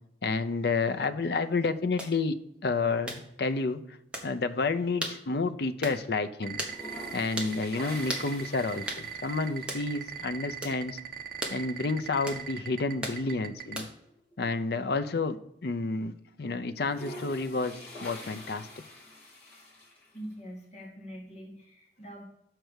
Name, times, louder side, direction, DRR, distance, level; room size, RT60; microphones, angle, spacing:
voice 1, 0.2-2.4 2.6-3.8 4.2-6.6 7.1-11.0 11.5-13.9 14.4-15.4 15.6-18.7, left 3 dB, 60° left, 10 dB, 0.5 m, -30 dB
sound 1, 2.0-2.1 3.1-3.2 4.1-4.3 5.0-5.2 5.8-6.0 6.6-6.8 7.4-7.5 8.1-8.3 8.9-9.0 9.7-9.9 10.6-10.8 11.4-11.6 12.3-12.4 13.0-13.2 13.7-14.0, right 1 dB, 5° right, 1.2 m, -35 dB
sound 2, 2.5-3.3 3.7-5.7 5.9-6.0 6.5-10.3 11.7-11.8 12.2-12.3 12.7-15.1 15.5-15.6 16.7-20.3, left 1 dB, 10° left, 2.8 m, -47 dB
sound 3, 6.4-13.7, right 8 dB, 50° right, 0.8 m, -39 dB
voice 2, 20.1-22.2, equal, 40° left, -3 dB, 1.8 m, -44 dB
6.6 x 4.6 x 6.3 m, 0.80 s
head